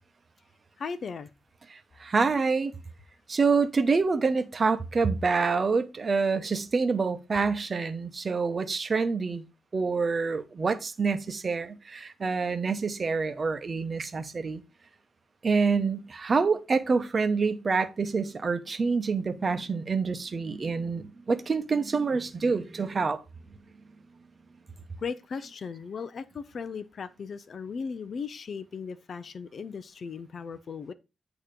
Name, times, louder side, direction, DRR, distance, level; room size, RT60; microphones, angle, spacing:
voice 1, 0.8-1.3 25.0-30.9, left 5 dB, 50° left, 0.5 m, -37 dB
voice 2, 1.7-2.7 3.3-9.4 9.7-14.6 15.4-23.2, right 4 dB, 35° right, 0.9 m, -27 dB
8.9 x 3.0 x 5.0 m
wide cardioid pair, 120°, 0 cm